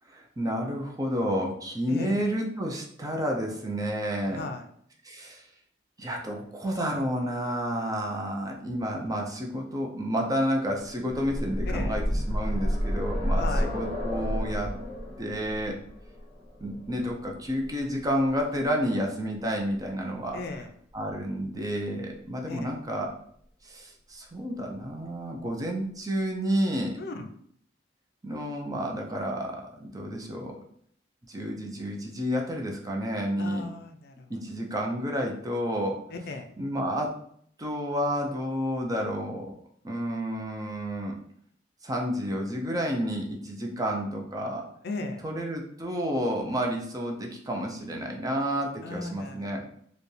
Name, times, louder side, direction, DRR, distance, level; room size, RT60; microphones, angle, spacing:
voice 1, 0.1-4.5 5.0-5.5 6.0-14.8 15.2-15.8 16.6-20.4 20.9-23.2 23.6-27.0 28.2-30.6 31.3-33.6 34.3-36.0 36.6-37.2 37.6-39.6 39.8-41.2 41.8-44.7 45.2-49.6, equal, 20° right, 1 dB, 0.6 m, -30 dB
voice 2, 1.9-2.2 4.3-4.6 11.6-11.9 13.3-13.7 20.3-20.7 22.5-22.7 27.0-27.3 33.4-34.3 36.1-36.5 44.8-45.2 48.8-49.6, left 3 dB, 60° left, 5 dB, 0.5 m, -36 dB
sound 1, 10.8-18.6 19.8-19.9 20.3-20.4, equal, 40° right, 1.2 m, -30 dB
4.9 x 2.3 x 3.2 m, 0.64 s
head